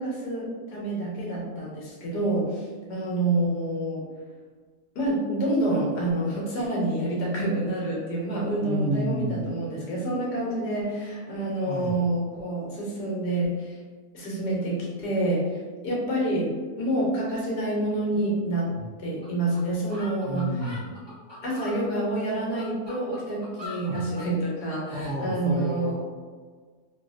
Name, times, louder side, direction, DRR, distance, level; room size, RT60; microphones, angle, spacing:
voice 1, 0.0-2.5 2.9-4.0 5.0-13.5 14.1-15.4 15.8-16.5 16.8-18.7 19.0-20.5 21.4-25.9, right 1 dB, 75° left, -4 dB, 1.4 m, -27 dB
voice 2, 8.6-9.5 11.7-11.9 18.8-18.9 20.3-20.8 23.8-24.1 24.9-25.9, equal, 75° right, -5 dB, 0.6 m, -30 dB
sound 1, 19.2-19.3 19.5-19.6 19.9-21.8 22.3-24.3, left 2 dB, 25° left, 0.6 m, -41 dB
3.1 x 2.7 x 2.4 m, 1.5 s
omnidirectional pair, 1.8 m